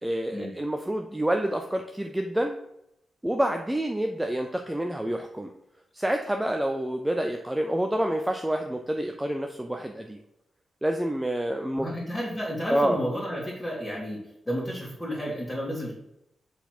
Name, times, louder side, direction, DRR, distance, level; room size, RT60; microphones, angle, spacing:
voice 1, 0.0-2.6 3.2-5.5 5.9-10.2 10.8-11.9 12.7-13.0, right 1 dB, 10° right, 4 dB, 0.5 m, -28 dB
voice 2, 11.8-14.2 14.5-15.9, equal, 10° left, -8 dB, 2.1 m, -31 dB
5.8 x 4.1 x 6.0 m, 0.82 s
cardioid pair, 95°, 0 cm